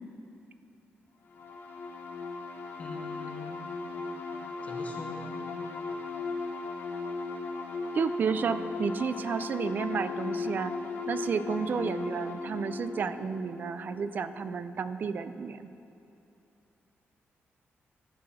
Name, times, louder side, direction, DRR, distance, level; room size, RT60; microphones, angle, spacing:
sound 1, 1.3-14.8, left 3 dB, 55° left, 1.0 m, -37 dB
voice 1, 2.8-3.7 4.6-5.4, left 3 dB, 30° left, 1 dB, 0.9 m, -43 dB
voice 2, 7.9-10.7 11.1-15.7, right 6 dB, 45° right, 12 dB, 0.3 m, -31 dB
14.0 x 4.7 x 6.2 m, 2.8 s
wide cardioid pair, 165°, 4 cm